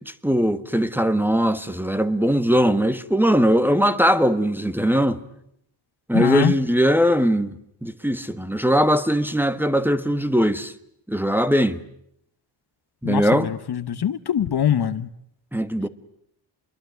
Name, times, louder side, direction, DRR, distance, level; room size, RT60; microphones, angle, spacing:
voice 1, 0.2-5.2 6.1-7.5 7.8-10.7 11.1-11.8 13.0-13.5 15.5-15.9, equal, 5° right, 1.3 m, -20 dB
voice 2, 6.1-6.5 13.0-15.1, left 9 dB, 50° left, 1.1 m, -23 dB
27.5 x 22.5 x 9.4 m
cardioid pair, 90°, 48 cm